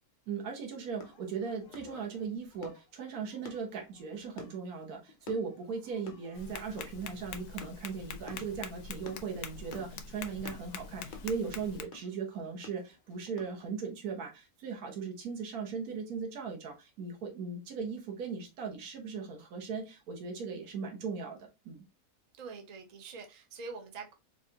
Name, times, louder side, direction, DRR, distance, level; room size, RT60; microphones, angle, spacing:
voice 1, 0.3-21.4 21.6-21.8, right 5 dB, 75° right, 1.5 m, -38 dB
sound 1, 1.0-13.7, left 4 dB, 55° left, 0.6 m, -52 dB
Tap, 6.3-11.8, left 6 dB, 80° left, 1.1 m, -44 dB
voice 2, 22.4-24.1, right 4 dB, 45° right, 0.5 m, -44 dB
4.7 x 2.4 x 2.7 m
omnidirectional pair, 1.6 m